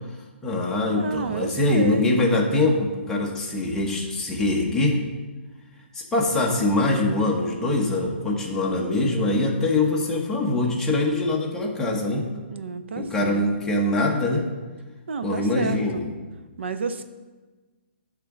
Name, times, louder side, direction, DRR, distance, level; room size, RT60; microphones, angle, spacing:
voice 1, 0.4-5.0 5.9-12.3 13.0-14.5 15.2-16.1, left 2 dB, 5° left, -2 dB, 0.9 m, -23 dB
voice 2, 0.9-2.2 12.5-13.4 15.1-16.0 16.6-17.0, right 5 dB, 70° right, 10 dB, 0.6 m, -30 dB
10.0 x 3.7 x 5.9 m, 1.3 s
hypercardioid pair, 160°, 7 cm